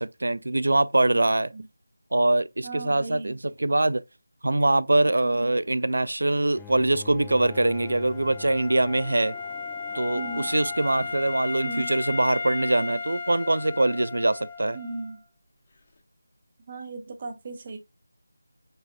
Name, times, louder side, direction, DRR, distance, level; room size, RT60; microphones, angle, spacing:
voice 1, 0.0-1.5 2.1-4.0 4.4-9.3 9.9-14.8, right 2 dB, 65° right, 0.5 m, -23 dB
voice 2, 2.6-3.3 5.2-5.5 10.1-10.5 11.6-12.0 14.7-15.2 16.7-17.8, right 3 dB, 30° right, 0.9 m, -37 dB
Bowed string instrument, 6.5-11.6, left 7 dB, 5° left, 0.4 m, -46 dB
Wind instrument woodwind instrument, 7.3-15.1, left 4 dB, 35° left, 1.2 m, -35 dB
5.5 x 4.0 x 2.2 m
figure-of-eight pair, 165°, 0 cm